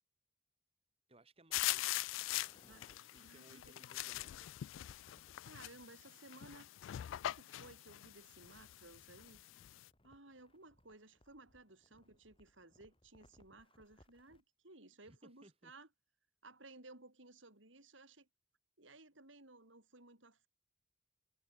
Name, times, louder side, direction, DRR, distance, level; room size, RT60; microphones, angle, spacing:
voice 1, 1.1-2.0 2.3-4.5 15.0-15.7, right 1 dB, 30° right, 4.3 m, -64 dB
sound 1, 1.5-9.8, left 15 dB, 80° left, 0.3 m, -42 dB
sound 2, 1.5-3.0 4.7-5.4 8.0-14.4, left 1 dB, 30° left, 4.7 m, -69 dB
voice 2, 3.2-3.7 5.4-6.7 7.1-9.4 10.0-15.9 16.4-18.3 18.8-20.5, right 2 dB, 80° right, 5.6 m, -59 dB
head